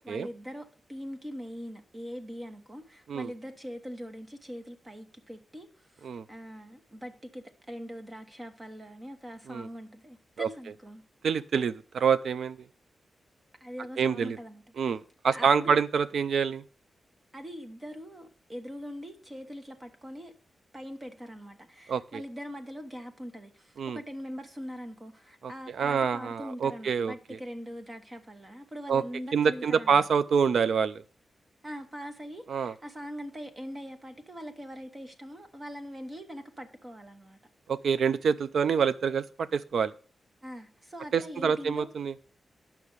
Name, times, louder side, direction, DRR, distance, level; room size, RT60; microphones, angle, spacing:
voice 1, 0.0-11.0 13.6-14.9 15.3-15.8 17.3-20.3 20.7-30.1 31.6-37.4 40.4-41.9, equal, 20° right, 1.2 m, -42 dB
voice 2, 11.2-12.6 14.0-14.4 14.8-16.6 21.9-22.2 23.8-24.0 25.4-27.1 28.9-29.0 29.3-31.0 32.5-32.7 37.7-39.9 41.1-42.1, right 6 dB, 75° right, 0.4 m, -26 dB
8.8 x 5.9 x 6.5 m
wide cardioid pair, 140°, 0 cm